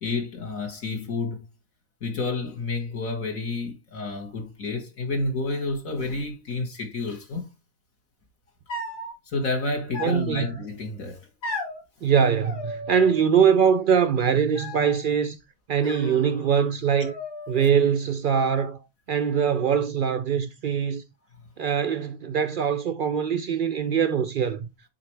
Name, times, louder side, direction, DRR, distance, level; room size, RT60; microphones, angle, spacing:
voice 1, 0.0-1.4 2.0-7.5 9.3-11.3 12.0-12.1, left 3 dB, 70° left, 2.0 m, -30 dB
sound 1, 8.7-9.1 9.9-10.6 11.4-11.8 12.4-13.3 13.5-14.1 14.5-15.1 15.8-16.7 17.0-17.7, left 2 dB, 85° left, 4.8 m, -36 dB
voice 2, 10.0-10.5 12.0-15.4 15.7-17.1 17.5-18.8 19.1-21.0 21.6-24.7, right 7 dB, 80° right, 0.4 m, -22 dB
9.9 x 4.4 x 3.2 m
omnidirectional pair, 1.5 m